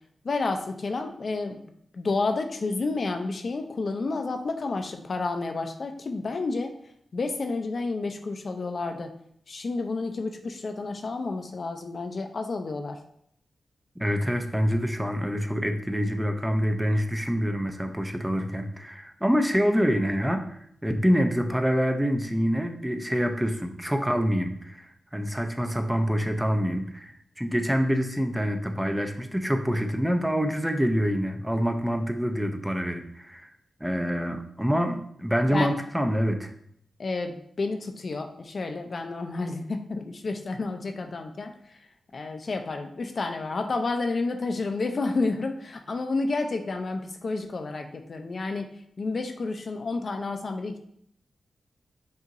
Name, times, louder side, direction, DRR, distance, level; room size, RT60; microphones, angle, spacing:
voice 1, 0.2-6.7 7.1-9.1 9.5-13.0 35.5-35.7 37.0-41.5 42.1-48.7 49.0-50.8, left 3 dB, 55° left, 5 dB, 0.4 m, -30 dB
voice 2, 14.0-33.5 33.8-36.5, equal, 5° right, 5 dB, 0.4 m, -26 dB
5.4 x 2.9 x 2.5 m, 0.68 s
cardioid pair, 80°, 0 cm